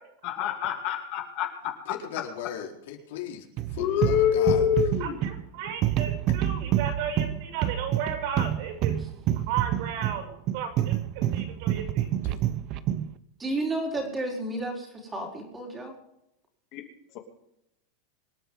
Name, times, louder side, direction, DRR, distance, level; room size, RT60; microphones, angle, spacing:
voice 1, 0.2-1.7 3.8-5.2 16.7-16.8, left 10 dB, 40° left, 3 dB, 2.7 m, -25 dB
voice 2, 1.9-3.4 3.7-4.6 12.2-12.4, left 9 dB, 70° left, 1 dB, 4.2 m, -38 dB
sound 1, 3.6-13.1, right 12 dB, 35° right, 0.8 m, -28 dB
voice 3, 5.0-9.0 9.5-12.1, right 8 dB, 50° right, 3 dB, 6.7 m, -34 dB
voice 4, 13.4-15.9, right 2 dB, 10° right, 1 dB, 4.4 m, -31 dB
26.0 x 10.0 x 3.8 m, 0.81 s
supercardioid pair, 170°, 0 cm